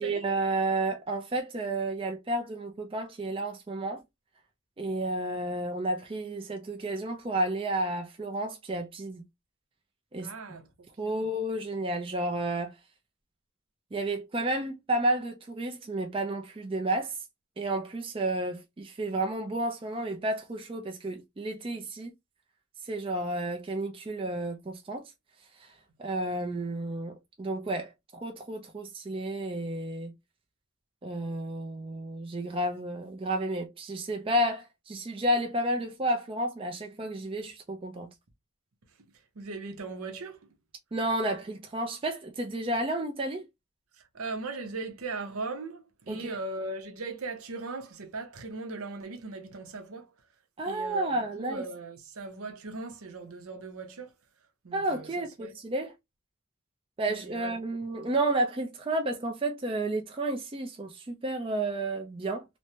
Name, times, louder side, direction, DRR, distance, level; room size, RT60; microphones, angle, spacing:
voice 1, 0.0-4.0 4.8-9.2 10.1-10.3 11.0-12.8 13.9-17.2 17.6-22.1 22.8-25.1 25.6-25.7 26.0-30.1 31.0-38.1 40.9-43.5 46.1-46.3 50.6-51.6 54.7-55.9 57.0-62.5, right 1 dB, 25° right, 0.4 m, -31 dB
voice 2, 10.2-11.3 39.4-40.4 44.0-50.1 50.7-54.1 54.6-55.5 57.1-57.5 57.9-58.1, right 3 dB, 75° right, 0.7 m, -39 dB
3.1 x 2.1 x 2.7 m
head